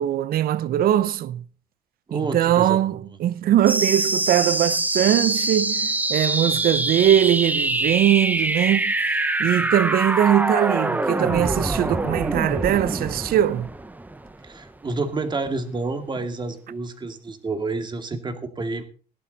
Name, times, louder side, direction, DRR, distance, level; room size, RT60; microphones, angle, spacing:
voice 1, 0.0-1.4 2.1-13.7, right 11 dB, 60° right, 0.8 m, -21 dB
voice 2, 2.1-3.0 14.4-18.8, right 3 dB, 25° right, 2.3 m, -29 dB
sound 1, 3.7-14.7, right 2 dB, 10° right, 1.0 m, -24 dB
17.0 x 11.5 x 4.1 m
cardioid pair, 110°, 17 cm